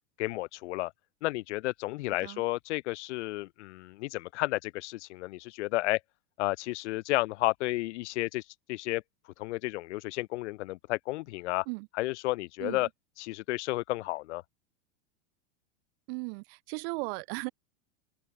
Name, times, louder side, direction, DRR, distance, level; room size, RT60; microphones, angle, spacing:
voice 1, 0.2-0.9 1.2-6.0 6.4-8.4 8.7-9.0 9.4-11.7 11.9-12.9 13.2-14.4, left 19 dB, 60° left, 2.5 m, -32 dB
voice 2, 16.1-17.5, right 31 dB, 50° right, 3.1 m, -36 dB
open air
supercardioid pair, 160°, 39 cm